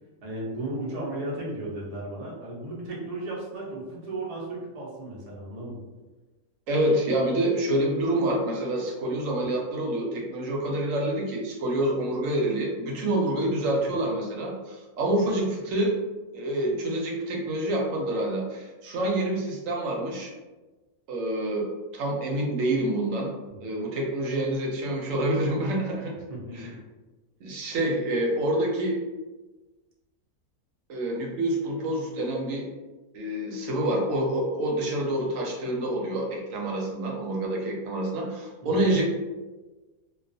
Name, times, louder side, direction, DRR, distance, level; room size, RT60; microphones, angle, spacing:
voice 1, 0.2-5.8 23.5-23.6 26.3-26.8 38.6-38.8, right 2 dB, 55° right, -5 dB, 0.4 m, -35 dB
voice 2, 6.7-16.0 16.3-20.3 21.1-21.7 21.9-23.3 23.6-26.1 26.5-26.7 27.4-29.0 30.9-32.7 33.1-39.0, right 1 dB, 70° right, -1 dB, 0.9 m, -27 dB
2.3 x 2.2 x 2.5 m, 1.2 s
omnidirectional pair, 1.5 m